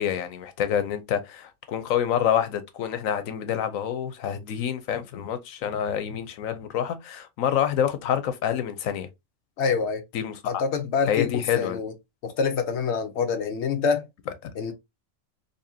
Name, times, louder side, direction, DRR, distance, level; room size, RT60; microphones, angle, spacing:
voice 1, 0.0-9.1 10.1-10.6 11.1-11.8, left 9 dB, 85° left, 1.1 m, -27 dB
voice 2, 9.6-10.0 10.4-11.9 12.2-14.0 14.5-14.7, left 5 dB, 60° left, 1.0 m, -26 dB
4.1 x 2.8 x 2.7 m
omnidirectional pair, 1.4 m